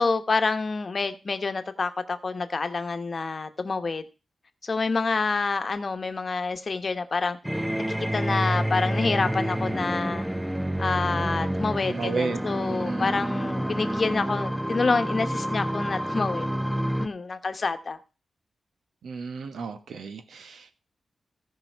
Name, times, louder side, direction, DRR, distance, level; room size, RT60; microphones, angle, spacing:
voice 1, 0.0-4.0 4.6-7.4 7.9-10.2 10.8-16.5 17.0-18.0, left 4 dB, 40° left, 1.1 m, -27 dB
sound 1, 7.4-17.1, equal, 5° right, 0.4 m, -28 dB
voice 2, 11.9-13.1 19.0-20.7, right 5 dB, 90° right, 1.4 m, -33 dB
16.5 x 5.6 x 4.6 m
wide cardioid pair, 115°, 0 cm